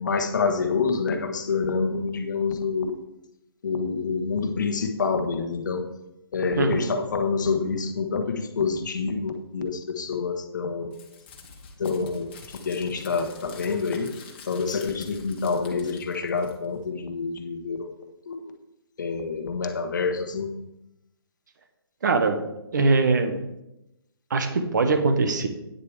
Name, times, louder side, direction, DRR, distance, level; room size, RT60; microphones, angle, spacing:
voice 1, 0.0-2.9 3.6-5.9 6.3-11.0 11.8-14.1 14.5-17.9 18.3-18.5 19.0-20.5, left 4 dB, 50° left, 5 dB, 1.2 m, -27 dB
voice 2, 6.6-6.9 22.0-22.4 22.7-23.4 24.3-25.5, right 3 dB, 45° right, 7 dB, 1.2 m, -22 dB
Crumpling crinkling, 10.9-16.8, left 5 dB, 25° left, 1.3 m, -47 dB
9.6 x 6.7 x 4.8 m, 0.90 s
hypercardioid pair, 175°, 13 cm